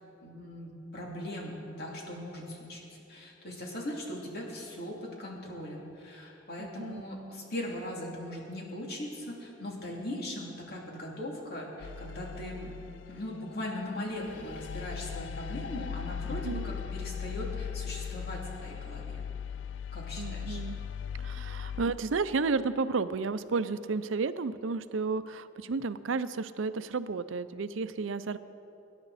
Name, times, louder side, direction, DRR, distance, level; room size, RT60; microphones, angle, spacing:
voice 1, 0.2-2.8 3.1-12.7 13.1-19.2 19.9-20.6, left 1 dB, 55° left, -3 dB, 2.8 m, -39 dB
voice 2, 6.6-7.0 16.4-16.6 20.2-20.8 21.2-28.4, right 4 dB, 85° right, 13 dB, 0.6 m, -32 dB
sound 1, 11.8-13.6 14.2-21.9, left 7 dB, 70° left, 0.4 m, -38 dB
24.0 x 10.5 x 4.2 m, 2.8 s
head